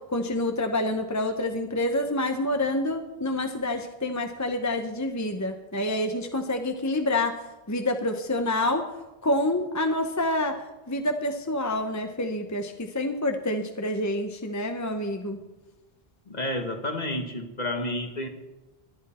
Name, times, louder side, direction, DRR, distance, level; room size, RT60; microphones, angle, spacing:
voice 1, 0.1-8.8 9.2-10.6 10.9-15.4, left 1 dB, 20° left, 5 dB, 0.9 m, -27 dB
voice 2, 16.3-18.3, left 1 dB, 45° left, 5 dB, 1.6 m, -30 dB
19.0 x 11.0 x 4.3 m, 1.1 s
omnidirectional pair, 1.0 m